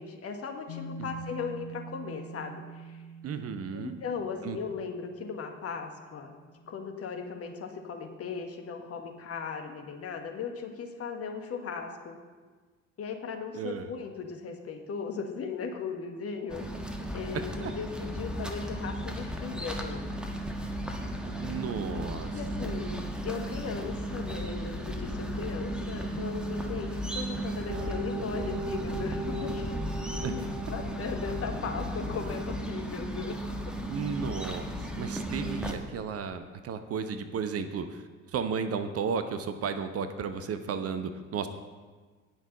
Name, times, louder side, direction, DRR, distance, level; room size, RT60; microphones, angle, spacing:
voice 1, 0.0-3.0 3.7-6.3 6.7-12.2 13.0-16.7 17.1-20.1 21.8-29.6 30.2-30.4 30.7-33.4 35.4-35.6, left 5 dB, 40° left, 4 dB, 1.5 m, -37 dB
sound 1, 0.7-10.1, right 2 dB, 70° left, 1.4 m, -47 dB
voice 2, 3.2-3.9 4.4-4.6 13.5-13.9 17.6-17.7 21.2-22.3 30.2-30.3 33.9-38.0 38.3-41.5, right 6 dB, 40° right, 9 dB, 0.9 m, -34 dB
sound 2, 16.5-35.7, right 1 dB, ahead, 1.5 m, -35 dB
sound 3, 27.7-32.7, right 1 dB, 65° right, 1.2 m, -39 dB
18.5 x 6.4 x 4.0 m, 1.4 s
figure-of-eight pair, 55°, 37 cm